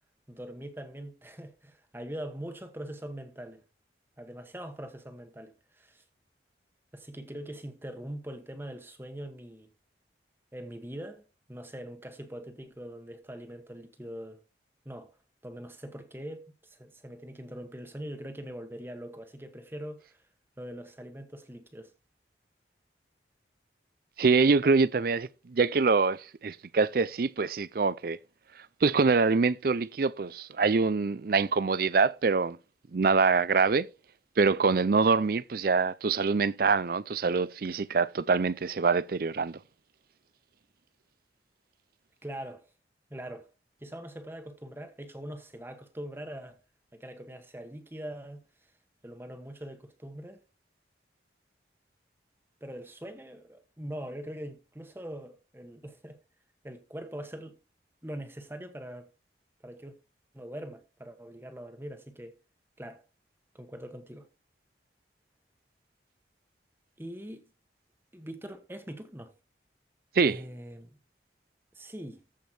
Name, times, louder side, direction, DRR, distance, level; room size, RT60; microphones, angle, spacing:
voice 1, 0.3-3.6 4.2-6.0 6.9-9.7 10.5-11.2 11.5-14.4 14.8-15.1 15.4-20.2 20.6-21.9 42.2-42.6 43.1-43.5 43.8-46.6 46.9-48.4 49.0-50.4 52.6-56.2 56.6-57.6 58.0-59.1 59.6-59.9 60.3-62.4 62.8-63.0 63.5-64.3 67.0-67.5 68.1-69.3 70.2-71.0 71.7-72.2, right 1 dB, 10° right, 1.2 m, -42 dB
voice 2, 24.2-28.2 28.8-32.6 32.9-33.9 34.4-39.6 70.2-70.5, right 4 dB, 55° right, 0.5 m, -25 dB
14.0 x 5.2 x 4.4 m
head